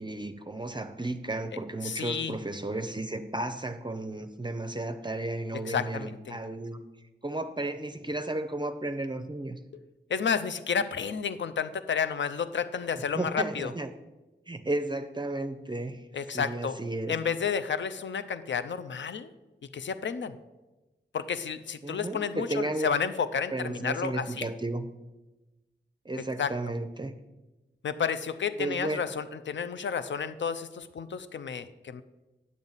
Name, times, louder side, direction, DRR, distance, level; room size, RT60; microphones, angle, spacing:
voice 1, 0.0-6.8 7.2-9.6 13.1-13.9 14.5-16.0 16.3-17.2 21.8-22.9 23.5-24.8 26.1-27.1 28.6-29.0, right 2 dB, 25° right, 8 dB, 0.6 m, -33 dB
voice 2, 1.8-2.4 5.7-6.4 10.1-13.7 16.1-16.8 17.1-19.3 19.7-20.4 21.1-24.5 26.4-26.5 27.8-32.0, left 6 dB, 75° left, 12 dB, 0.5 m, -31 dB
9.4 x 7.2 x 4.0 m, 1.1 s
cardioid pair, 55°, 19 cm